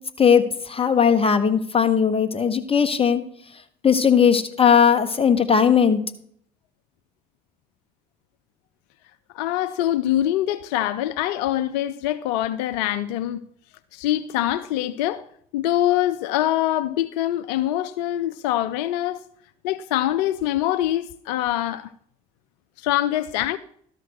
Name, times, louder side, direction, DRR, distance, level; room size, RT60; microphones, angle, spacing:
voice 1, 0.2-3.2 3.8-6.0, left 7 dB, 25° left, 1.3 m, -18 dB
voice 2, 9.3-13.4 13.9-15.3 15.5-19.2 19.6-21.9 22.8-23.6, left 13 dB, 80° left, 0.5 m, -24 dB
12.5 x 4.5 x 6.4 m
hypercardioid pair, 60°, 21 cm